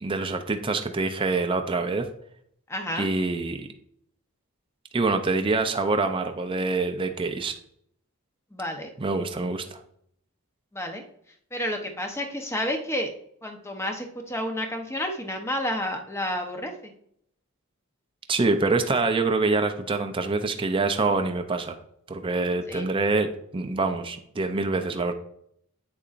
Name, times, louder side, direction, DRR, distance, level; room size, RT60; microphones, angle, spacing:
voice 1, 0.0-2.1 3.0-3.7 4.9-7.5 9.0-9.8 18.3-21.8 22.1-25.1, right 3 dB, 25° right, 6 dB, 0.5 m, -25 dB
voice 2, 2.7-3.1 8.5-8.9 10.7-11.0 11.5-13.1 13.4-16.9 22.7-22.9, left 1 dB, 10° left, 4 dB, 0.9 m, -30 dB
8.7 x 6.8 x 2.5 m, 0.69 s
head